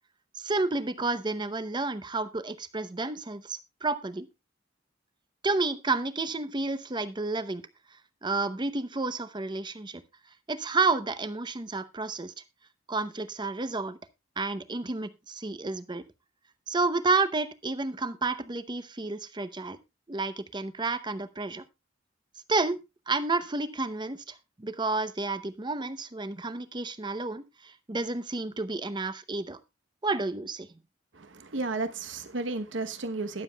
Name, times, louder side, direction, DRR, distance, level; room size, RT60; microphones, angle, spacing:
voice 1, 0.4-4.3 5.4-7.6 8.2-10.0 10.5-12.3 12.9-14.0 14.4-16.0 16.7-19.8 20.1-21.6 22.5-22.8 23.1-29.6 30.0-30.7, right 3 dB, 25° right, 0.7 m, -30 dB
voice 2, 31.1-33.4, right 3 dB, 70° right, 1.0 m, -33 dB
21.0 x 7.3 x 2.3 m
head